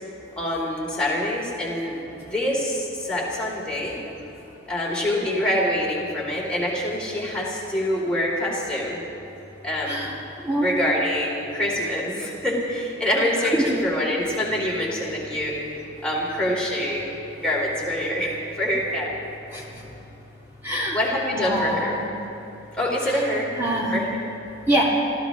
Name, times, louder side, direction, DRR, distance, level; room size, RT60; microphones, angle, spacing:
voice 1, 0.4-4.0 4.7-9.0 9.6-10.1 10.6-15.5 16.0-17.1 17.4-19.1 20.9-22.0 22.7-23.5 23.9-24.2, left 1 dB, 5° left, -5 dB, 2.9 m, -25 dB
voice 2, 19.5-19.8 20.6-21.0 21.3-22.1 23.0-23.2 23.6-24.0 24.7-24.8, right 1 dB, 10° right, -5 dB, 1.9 m, -25 dB
30.0 x 14.0 x 3.0 m, 2.9 s
head